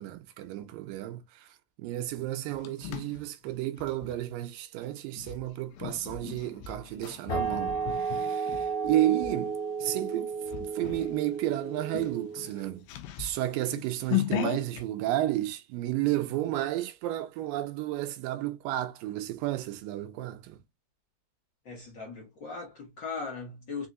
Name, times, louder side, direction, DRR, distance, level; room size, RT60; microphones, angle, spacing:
voice 1, 0.0-10.3 10.6-12.8 13.2-20.6, right 14 dB, 90° right, 2.4 m, -32 dB
sound 1, 2.2-4.2 5.1-9.4 9.9-10.1 10.5-11.1 11.5-11.6 11.9-14.8, left 13 dB, 85° left, 2.2 m, -36 dB
sound 2, 7.3-12.7, right 5 dB, 70° left, 2.1 m, -33 dB
voice 2, 21.6-23.9, left 4 dB, 45° left, 1.7 m, -38 dB
5.7 x 2.8 x 2.4 m
omnidirectional pair, 3.9 m